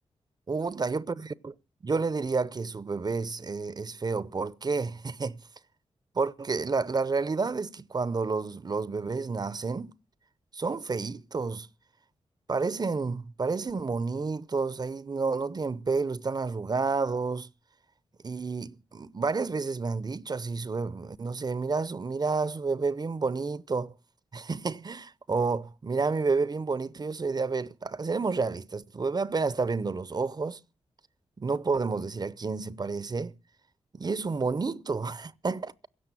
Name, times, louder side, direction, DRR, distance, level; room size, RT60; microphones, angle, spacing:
voice 1, 0.5-1.5 1.8-5.4 6.1-9.9 10.5-11.7 12.5-17.5 18.2-23.9 24.3-30.6 31.4-33.3 33.9-35.7, right 4 dB, 40° right, 0.7 m, -30 dB
16.5 x 6.4 x 9.0 m
cardioid pair, 50°, 11 cm